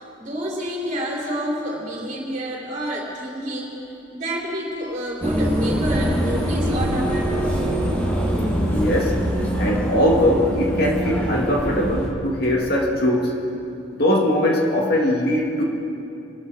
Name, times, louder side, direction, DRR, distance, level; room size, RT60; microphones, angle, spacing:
voice 1, 0.0-3.8 4.1-7.7, equal, 40° right, -3 dB, 3.5 m, -29 dB
sound 1, 5.2-12.1, equal, 10° left, 2.2 m, -23 dB
voice 2, 8.7-9.3 9.6-13.4 14.0-15.6, left 1 dB, 50° left, -2 dB, 2.2 m, -20 dB
26.0 x 13.0 x 4.1 m, 2.7 s
head